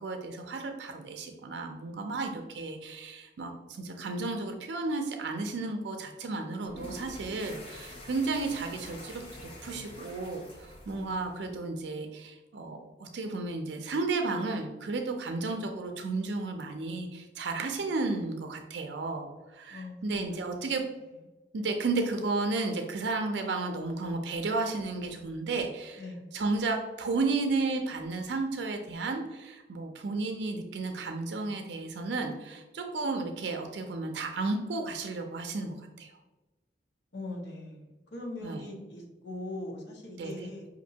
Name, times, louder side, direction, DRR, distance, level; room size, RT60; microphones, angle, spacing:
voice 1, 0.0-20.8 21.5-26.0 26.3-36.1 38.4-38.6 40.2-40.3, right 3 dB, 80° right, 4 dB, 0.4 m, -33 dB
sound 1, 6.6-11.7, left 1 dB, 30° left, 0.9 m, -46 dB
voice 2, 10.9-11.4 19.7-20.6 26.0-26.2 37.1-40.7, left 2 dB, 80° left, -1 dB, 0.9 m, -41 dB
5.2 x 2.6 x 2.7 m, 1.1 s
head